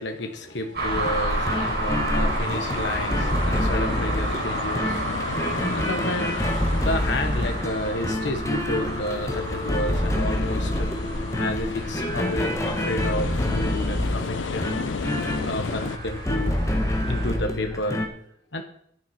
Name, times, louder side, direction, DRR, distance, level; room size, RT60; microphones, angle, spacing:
voice 1, 0.0-16.6 17.1-18.0 18.5-18.6, left 1 dB, 75° left, 5 dB, 1.3 m, -31 dB
sound 1, 0.7-17.3, right 1 dB, 55° right, 6.2 m, -31 dB
sound 2, 0.9-18.1, left 1 dB, 15° left, 1.2 m, -28 dB
sound 3, 1.3-16.0, left 5 dB, 90° left, 0.5 m, -34 dB
11.0 x 9.2 x 5.9 m, 0.67 s
head